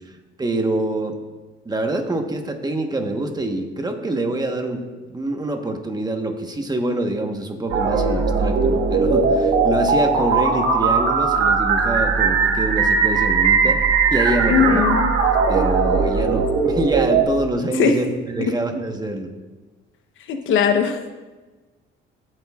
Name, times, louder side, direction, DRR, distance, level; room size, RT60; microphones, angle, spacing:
voice 1, 0.4-1.2 1.6-4.8 5.1-13.8 14.1-14.8 15.5-19.3, right 2 dB, 20° right, 4 dB, 1.2 m, -25 dB
sound 1, 7.7-17.2, right 4 dB, 85° right, 1.4 m, -19 dB
voice 2, 14.5-15.1 17.8-17.9 20.3-21.1, left 7 dB, 70° left, 6 dB, 0.9 m, -19 dB
20.5 x 7.8 x 2.4 m, 1.3 s
cardioid pair, 95°, 21 cm